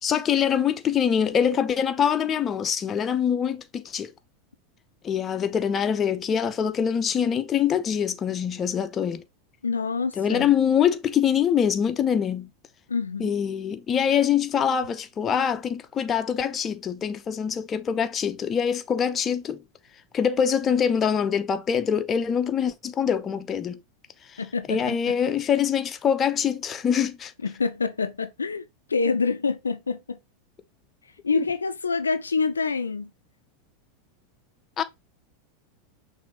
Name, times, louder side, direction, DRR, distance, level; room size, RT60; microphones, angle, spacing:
voice 1, 0.0-4.1 5.0-9.2 10.2-12.5 13.2-19.6 20.1-23.8 24.3-24.4 24.7-27.3 31.3-31.4 34.8-34.9, left 8 dB, 30° left, 0.6 m, -24 dB
voice 2, 9.6-10.5 12.9-13.3 24.4-25.2 27.4-30.2 31.0-33.1, left 4 dB, 85° left, 0.4 m, -27 dB
6.0 x 2.7 x 3.0 m
figure-of-eight pair, 90°, 0 cm